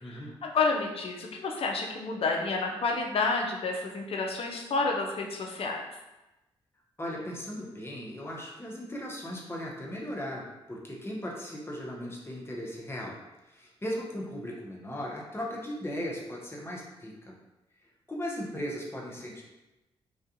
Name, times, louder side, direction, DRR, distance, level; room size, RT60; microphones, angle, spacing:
voice 1, 0.0-5.8, left 3 dB, 55° left, 1 dB, 0.5 m, -30 dB
voice 2, 7.0-10.4 10.7-13.2 13.5-17.3 18.1-19.4, equal, 20° left, -2 dB, 0.7 m, -37 dB
2.4 x 2.3 x 2.7 m, 0.99 s
supercardioid pair, 50°, 12 cm